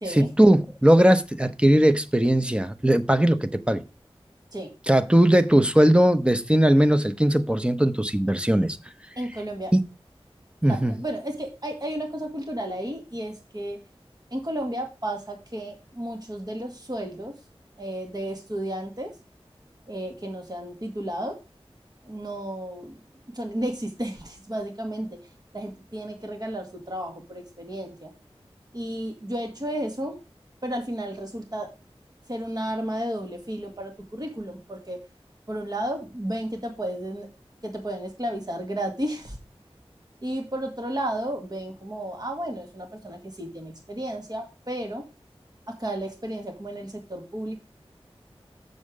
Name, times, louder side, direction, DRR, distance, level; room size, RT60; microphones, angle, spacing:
voice 1, 0.1-3.8 4.9-8.8 9.7-9.8 10.6-10.9, right 1 dB, 10° right, 0.8 m, -19 dB
voice 2, 9.2-9.7 10.7-13.8 14.3-17.3 17.8-19.1 19.9-21.4 22.1-22.9 23.3-25.2 25.5-28.1 28.7-30.2 30.6-31.7 32.3-35.0 35.5-37.3 37.6-39.4 40.2-45.0 45.7-47.6, right 1 dB, 40° right, 1.8 m, -33 dB
7.1 x 6.6 x 4.8 m
wide cardioid pair, 45°, 10 cm